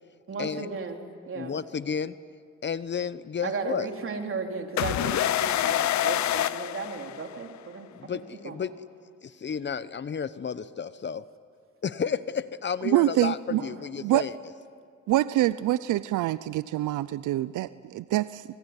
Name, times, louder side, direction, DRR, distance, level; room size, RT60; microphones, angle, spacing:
voice 1, 0.3-1.0 1.3-1.6 3.4-8.1 8.4-8.6 13.6-13.9, right 4 dB, 45° right, 3 dB, 3.9 m, -35 dB
voice 2, 1.3-2.2 2.6-3.9 7.9-8.7 9.2-11.2 11.8-14.3, left 6 dB, 35° left, 15 dB, 0.9 m, -32 dB
sound 1, 4.8-7.6, left 12 dB, 65° left, 0.8 m, -26 dB
voice 3, 12.8-13.6 14.0-14.2 15.1-18.4, right 15 dB, 80° right, 16 dB, 0.6 m, -25 dB
26.5 x 22.0 x 9.9 m, 2.1 s
cardioid pair, 90°, 30 cm